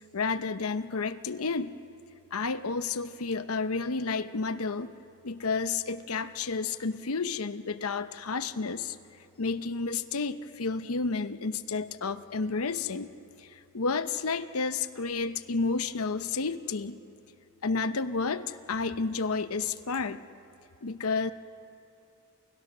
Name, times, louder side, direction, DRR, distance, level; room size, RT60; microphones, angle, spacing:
voice 1, 0.1-1.7 2.3-4.9 5.2-9.0 9.4-13.1 13.4-17.0 17.6-20.2 20.8-21.3, left 4 dB, 70° left, 12 dB, 0.8 m, -31 dB
29.5 x 28.5 x 6.1 m, 2.7 s
head